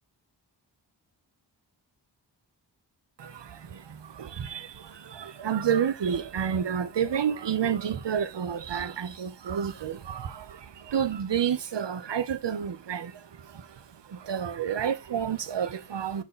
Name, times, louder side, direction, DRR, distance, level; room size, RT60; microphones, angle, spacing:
voice 1, 5.4-10.0 10.9-13.1 14.3-16.2, right 8 dB, 75° right, 0.9 m, -28 dB
7.6 x 4.2 x 3.9 m
wide cardioid pair, 85°, 43 cm